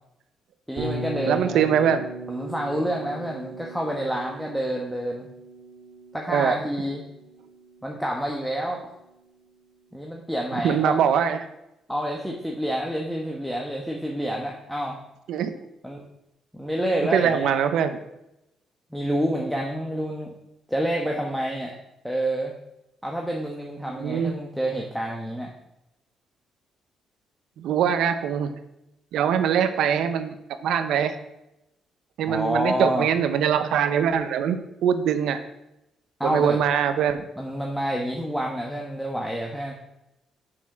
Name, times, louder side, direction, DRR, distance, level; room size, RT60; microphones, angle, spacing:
voice 1, 0.7-1.7 2.3-5.3 6.1-7.0 7.8-8.9 9.9-11.0 11.9-15.0 15.8-16.0 16.5-17.5 18.9-20.3 20.7-21.7 22.0-22.5 23.0-25.5 32.3-33.1 36.2-36.6 37.4-39.7, right 1 dB, ahead, -1 dB, 1.2 m, -28 dB
Bass guitar, 0.8-8.8, right 2 dB, 55° right, 2.1 m, -38 dB
voice 2, 1.2-2.1 6.3-6.6 10.6-11.5 15.3-15.5 17.1-18.0 24.0-24.4 27.6-28.5 29.1-31.1 32.2-35.4 36.2-37.3, right 8 dB, 80° right, 10 dB, 0.7 m, -23 dB
6.4 x 6.0 x 6.0 m, 0.88 s
cardioid pair, 90°, 0 cm